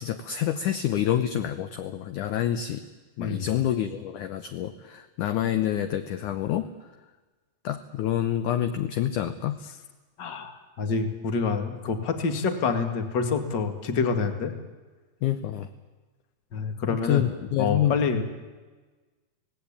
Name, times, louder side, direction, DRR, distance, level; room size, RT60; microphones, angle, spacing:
voice 1, 0.0-2.9 3.2-6.7 7.6-9.6 15.2-15.7 16.9-18.0, left 11 dB, 75° left, 9 dB, 1.9 m, -27 dB
voice 2, 10.2-14.5 16.5-17.2 17.6-18.2, left 5 dB, 35° left, 6 dB, 1.9 m, -27 dB
26.0 x 18.5 x 8.8 m, 1.3 s
omnidirectional pair, 4.5 m